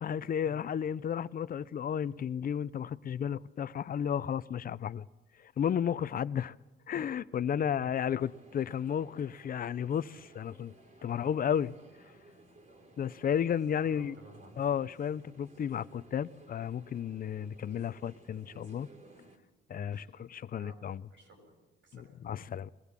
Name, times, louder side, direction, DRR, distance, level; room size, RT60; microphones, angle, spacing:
voice 1, 0.0-5.1 5.4-6.5 6.9-10.7 11.0-11.7 13.0-14.1 14.6-18.9 19.7-21.0 21.9-22.7, left 8 dB, 45° left, 0.6 m, -33 dB
voice 2, 7.6-7.9 11.0-11.3 13.9-14.6 19.7-20.8 21.1-22.1, right 1 dB, 75° right, 7.3 m, -56 dB
sound 1, 8.2-19.4, right 2 dB, 40° right, 3.9 m, -58 dB
22.0 x 17.0 x 7.5 m
cardioid pair, 90°, 20 cm